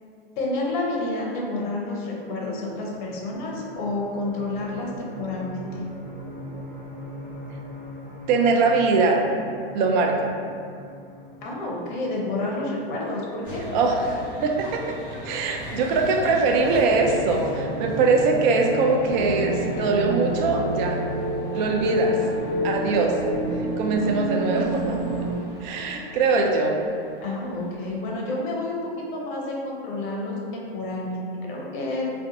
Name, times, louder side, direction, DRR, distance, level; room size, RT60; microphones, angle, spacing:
voice 1, 0.4-5.8 11.4-13.6 27.2-32.1, left 2 dB, 50° left, -2 dB, 0.7 m, -29 dB
sound 1, 2.0-21.2, equal, 5° right, 0.7 m, -41 dB
voice 2, 8.3-9.2 9.7-10.3 13.7-14.8 15.2-21.0 21.5-22.2 22.6-23.1 23.8-25.0 25.6-26.8, right 4 dB, 50° right, 1 dB, 0.4 m, -22 dB
sound 2, 13.4-27.9, left 1 dB, 25° left, 1.0 m, -40 dB
sound 3, 16.9-25.3, right 1 dB, 35° right, 0.9 m, -28 dB
2.5 x 2.2 x 2.6 m, 2.3 s
hypercardioid pair, 110°, 30 cm